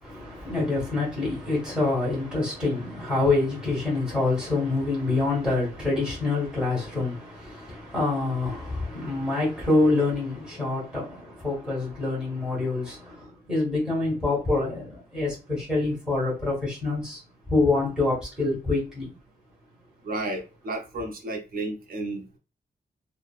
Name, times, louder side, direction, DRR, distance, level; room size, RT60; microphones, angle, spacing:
voice 1, 0.0-17.2 17.5-19.1, left 3 dB, 5° right, 1.4 m, -26 dB
voice 2, 20.0-22.4, right 2 dB, 60° right, 0.6 m, -32 dB
3.2 x 2.1 x 2.4 m
wide cardioid pair, 160°, 17 cm